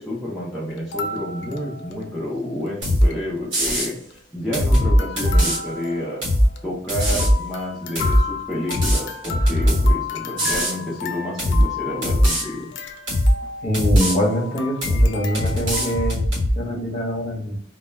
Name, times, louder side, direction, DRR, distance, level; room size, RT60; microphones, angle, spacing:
voice 1, 0.0-3.9 4.3-6.2 6.6-12.7, left 1 dB, ahead, -7 dB, 0.5 m, -29 dB
sound 1, 0.7-2.4 2.7-2.8 2.9-3.2 3.7-4.4 4.7-16.1, left 5 dB, 65° left, 0.3 m, -34 dB
sound 2, 2.8-3.1 3.5-3.9 4.5-5.6 6.2-6.5 6.9-7.4 7.9-8.2 8.7-9.9 10.4-10.8 11.4-11.7 12.0-12.4 13.1-13.3 13.7-14.2 14.8-15.1 15.3-16.5, equal, 65° right, 1.1 m, -19 dB
voice 2, 13.6-16.3 16.6-17.6, equal, 35° left, -2 dB, 0.7 m, -24 dB
2.2 x 2.1 x 3.2 m, 0.65 s
head